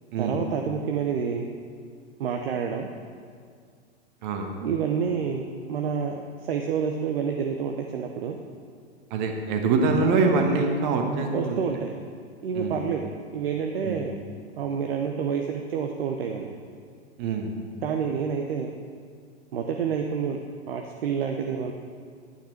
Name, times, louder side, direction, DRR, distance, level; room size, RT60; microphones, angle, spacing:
voice 1, 0.2-1.5 2.2-2.9 4.6-8.4 11.3-11.9 12.4-14.1 14.6-16.5 17.8-18.7 19.5-20.4 20.7-21.7, right 6 dB, 60° right, 3 dB, 0.8 m, -28 dB
voice 2, 4.2-4.5 9.1-11.6 12.5-12.8 13.8-14.0 17.2-17.5, right 4 dB, 45° right, 3 dB, 1.4 m, -24 dB
11.0 x 9.0 x 4.4 m, 2.1 s
figure-of-eight pair, 95°, 33 cm